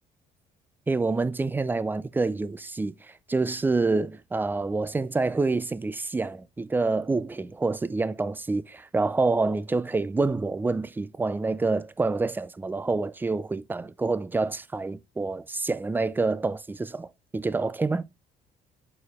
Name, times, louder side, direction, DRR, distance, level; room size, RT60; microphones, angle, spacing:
voice 1, 0.9-18.1, right 3 dB, 10° right, 0.4 m, -27 dB
6.5 x 4.6 x 3.5 m
cardioid pair, 110°, 17 cm